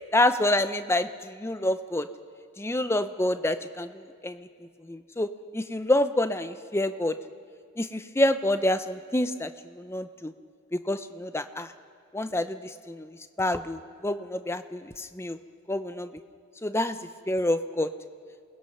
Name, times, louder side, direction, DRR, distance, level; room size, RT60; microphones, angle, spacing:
voice 1, 0.1-2.1 2.6-3.9 4.2-4.5 4.9-5.3 5.5-7.1 7.8-9.5 9.8-10.3 10.9-11.7 12.1-12.6 12.9-15.4 15.7-16.1 16.6-17.0 17.3-17.9, left 1 dB, 10° left, 10 dB, 0.5 m, -27 dB
28.5 x 20.0 x 5.5 m, 2.2 s
head